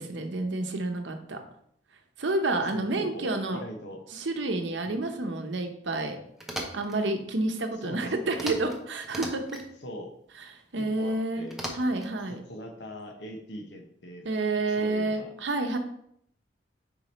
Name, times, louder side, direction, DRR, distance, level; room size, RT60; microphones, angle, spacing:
voice 1, 0.0-1.4 2.2-3.6 4.1-6.2 6.7-9.6 10.7-11.5 11.8-12.4 14.2-15.8, right 2 dB, 75° right, 5 dB, 0.8 m, -29 dB
voice 2, 2.7-4.0 4.8-5.0 7.8-8.3 9.8-10.1 10.8-11.6 12.3-14.3 14.8-15.3, equal, 65° left, 3 dB, 1.1 m, -42 dB
sound 1, 6.4-7.0 8.3-8.8 9.0-9.7 11.5-12.1, equal, ahead, 0.8 m, -37 dB
5.0 x 4.8 x 4.2 m, 0.70 s
head